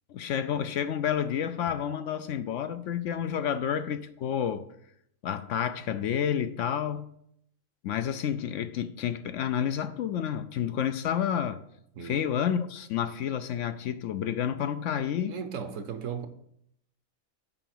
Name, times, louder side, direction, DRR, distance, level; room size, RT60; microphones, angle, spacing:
voice 1, 0.1-4.6 5.2-7.1 7.8-11.6 12.0-15.4, left 9 dB, 70° left, 0.8 m, -30 dB
voice 2, 15.3-16.3, right 6 dB, 70° right, 1.2 m, -36 dB
7.8 x 4.5 x 6.0 m
omnidirectional pair, 1.4 m